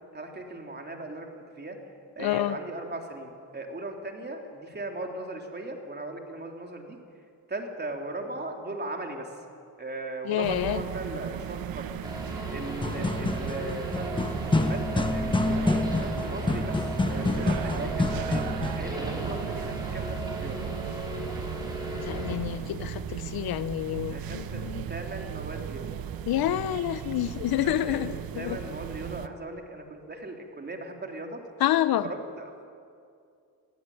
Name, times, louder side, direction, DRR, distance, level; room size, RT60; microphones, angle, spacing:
voice 1, 0.1-1.8 2.2-7.0 7.5-9.3 9.8-12.0 12.2-14.1 14.5-20.7 24.1-26.1 27.6-31.4 32.0-32.7, right 2 dB, 25° right, 2 dB, 3.5 m, -38 dB
voice 2, 2.2-2.6 10.3-10.8 22.0-24.9 26.3-28.6 31.6-32.1, left 12 dB, 75° left, 15 dB, 0.8 m, -28 dB
sound 1, 10.4-29.3, right 10 dB, 70° right, 1.0 m, -36 dB
sound 2, 12.0-22.3, right 1 dB, 10° right, 5.5 m, -36 dB
sound 3, 12.7-18.9, left 2 dB, 15° left, 1.2 m, -28 dB
21.0 x 15.0 x 8.6 m, 2.4 s
cardioid pair, 75°, 37 cm